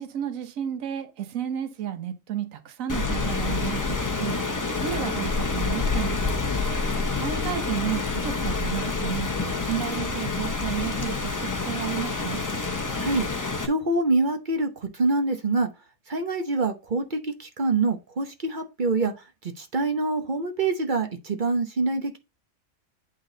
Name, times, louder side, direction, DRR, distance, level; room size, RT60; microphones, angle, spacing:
voice 1, 0.0-4.4 4.8-6.4 7.2-9.3 9.6-11.1 11.7-12.4, right 10 dB, 60° right, 1.3 m, -32 dB
Rain, 2.9-13.7, left 3 dB, 20° left, 0.5 m, -28 dB
voice 2, 13.6-15.7 16.1-19.1 19.4-22.2, right 3 dB, 40° right, 0.8 m, -25 dB
8.2 x 3.9 x 3.8 m
omnidirectional pair, 1.7 m